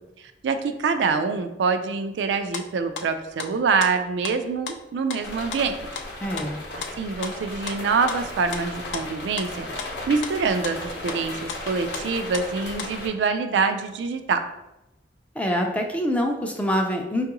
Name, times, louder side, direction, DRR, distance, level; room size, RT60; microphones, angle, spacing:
voice 1, 0.4-5.8 6.7-9.7 10.1-14.4, right 5 dB, 80° right, 8 dB, 0.3 m, -25 dB
sound 1, 2.3-2.7 3.0-3.5 3.8-4.4 4.7-5.2 5.5-10.4 10.6-10.8 11.1-11.2 11.5-13.1, left 6 dB, 90° left, 0.4 m, -36 dB
sound 2, 5.2-13.1, left 2 dB, 70° left, 0.8 m, -36 dB
voice 2, 6.2-6.6 15.4-17.3, equal, 10° left, 2 dB, 0.4 m, -25 dB
4.5 x 2.4 x 2.9 m, 0.95 s
head